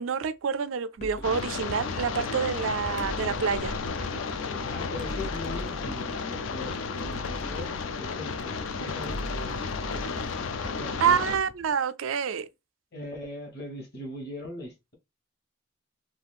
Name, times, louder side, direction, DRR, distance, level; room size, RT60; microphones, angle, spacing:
voice 1, 0.0-3.7 11.0-12.5, right 7 dB, 90° right, 0.4 m, -27 dB
sound 1, 1.0-1.4 3.0-3.9 5.0-6.2 7.0-8.3 9.0-10.9, equal, 40° left, 0.7 m, -40 dB
sound 2, 1.2-11.4, left 5 dB, 80° left, 0.4 m, -33 dB
sound 3, 1.7-11.8, right 2 dB, 25° right, 0.4 m, -46 dB
voice 2, 4.4-6.7 7.0-9.6 10.8-11.4 12.9-14.9, left 2 dB, 55° left, 1.2 m, -40 dB
2.7 x 2.4 x 3.4 m
head